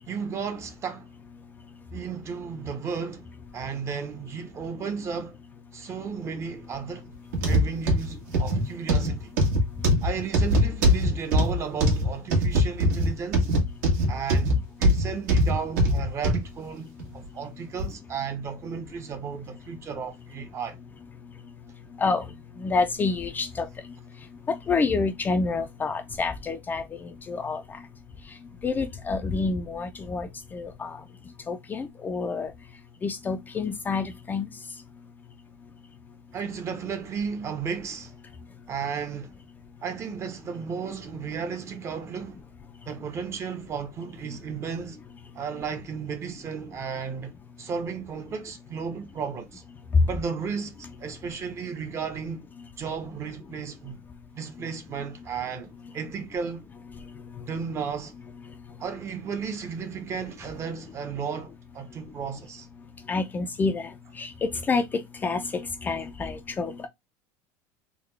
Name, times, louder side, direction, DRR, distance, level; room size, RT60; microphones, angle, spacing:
voice 1, 0.1-1.1 1.9-5.4 5.7-7.1 7.4-9.3 10.0-13.5 14.1-20.8 36.3-38.1 38.7-39.3 39.8-42.4 42.9-45.0 45.3-47.3 47.6-49.6 50.1-52.5 52.8-54.0 54.3-56.6 57.5-58.1 58.8-62.7, right 6 dB, 30° right, 0.7 m, -34 dB
sound 1, 7.3-16.5 17.0-17.1 17.8-17.9, equal, 80° right, 1.4 m, -22 dB
voice 2, 22.6-23.7 24.5-27.8 28.6-31.0 31.5-32.5 33.0-34.5 49.9-50.0 63.1-66.9, left 4 dB, 20° left, 0.4 m, -28 dB
3.6 x 2.2 x 3.2 m
supercardioid pair, 135°, 10 cm